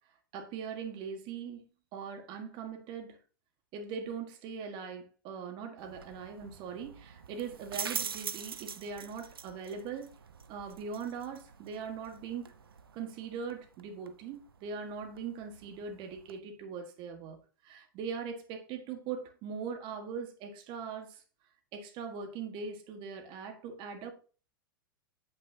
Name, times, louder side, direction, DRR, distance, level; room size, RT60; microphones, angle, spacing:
voice 1, 0.3-3.2 3.7-10.1 10.5-12.5 12.9-21.2 21.7-24.1, right 6 dB, 45° right, 1.5 m, -41 dB
sound 1, 5.8-16.4, right 7 dB, 85° right, 0.6 m, -45 dB
7.8 x 5.8 x 2.7 m
hypercardioid pair, 105°, 12 cm